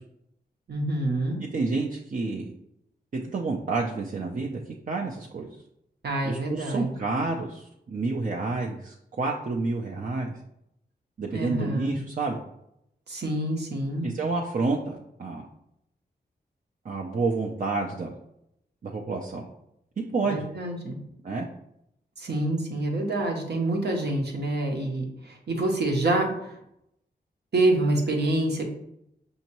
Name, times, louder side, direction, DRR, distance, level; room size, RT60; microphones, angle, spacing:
voice 1, 0.7-1.4 6.0-6.9 11.3-12.0 13.1-14.1 20.3-21.0 22.2-26.6 27.5-28.7, right 2 dB, 70° right, 1 dB, 0.9 m, -27 dB
voice 2, 1.4-2.5 3.1-4.6 4.9-5.5 6.2-10.3 11.2-12.4 14.0-15.5 16.8-18.1 18.8-19.5 20.1-20.5 21.2-21.5, right 3 dB, 50° right, -1 dB, 0.6 m, -29 dB
5.3 x 2.8 x 3.0 m, 0.78 s
cardioid pair, 60°, 18 cm